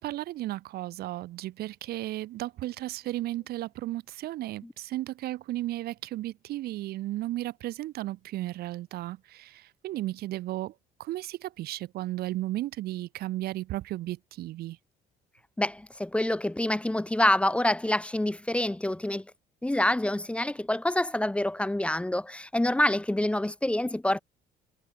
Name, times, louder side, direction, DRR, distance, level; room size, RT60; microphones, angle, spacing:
voice 1, 0.0-10.7 11.0-14.8, right 16 dB, 65° right, 0.6 m, -34 dB
voice 2, 15.6-19.2 19.6-24.2, left 1 dB, 5° left, 0.6 m, -27 dB
cardioid pair, 110°, 17 cm